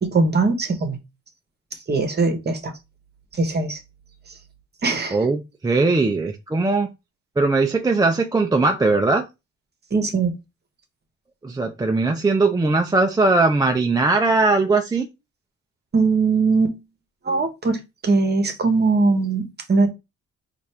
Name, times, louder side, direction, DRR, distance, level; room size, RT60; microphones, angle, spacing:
voice 1, 0.0-1.0 1.9-2.7 3.3-3.8 4.8-5.2 9.9-10.3 15.9-16.8 17.2-19.9, right 3 dB, 35° right, 1.0 m, -20 dB
voice 2, 5.1-6.9 7.4-9.3 11.4-15.1, right 3 dB, 15° right, 0.4 m, -19 dB
4.2 x 2.5 x 3.2 m
cardioid pair, 90°, 30 cm